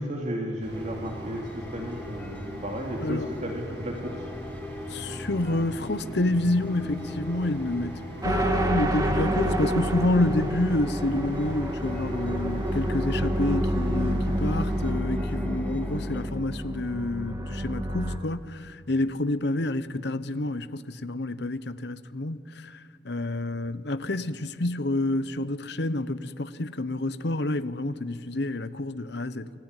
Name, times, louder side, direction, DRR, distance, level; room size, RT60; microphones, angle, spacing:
voice 1, 0.0-4.5, equal, 35° right, 2.9 m, -34 dB
sound 1, 0.6-14.9, equal, 60° right, 2.1 m, -41 dB
sound 2, 0.7-16.3, left 1 dB, 10° left, 1.7 m, -41 dB
voice 2, 3.0-3.3 4.9-29.5, left 2 dB, 60° left, 0.9 m, -28 dB
sound 3, 8.2-18.2, equal, 20° right, 2.0 m, -28 dB
28.5 x 20.5 x 9.8 m
head